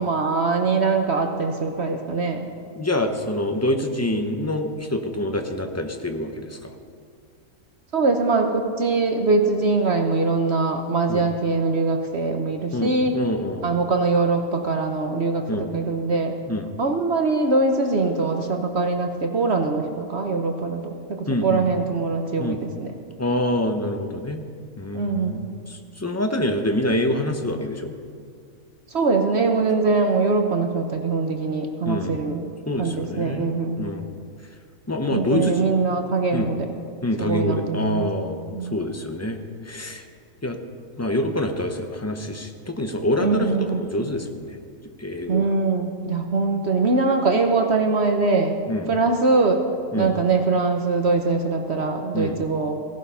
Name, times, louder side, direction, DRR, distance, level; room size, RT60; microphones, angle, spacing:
voice 1, 0.0-2.5 7.9-13.2 13.6-16.3 16.8-20.8 21.1-22.9 24.9-25.4 28.9-32.5 32.8-33.8 35.1-36.7 37.2-38.1 38.5-38.8 43.2-43.8 45.3-48.6 48.9-49.6 50.0-52.7, right 3 dB, 50° right, 4 dB, 1.1 m, -22 dB
voice 2, 2.7-6.7 11.1-11.3 12.7-13.7 15.5-15.7 16.5-16.7 21.3-21.6 22.4-22.6 23.2-24.4 24.8-27.9 31.8-32.2 32.7-34.1 34.9-35.7 36.3-36.5 37.0-39.4 39.6-40.0 40.4-40.6 41.0-44.6 45.0-45.5 48.7-48.9 49.9-50.1 52.1-52.4, left 1 dB, 15° left, 5 dB, 0.6 m, -26 dB
16.5 x 11.5 x 5.6 m, 2.2 s
omnidirectional pair, 1.6 m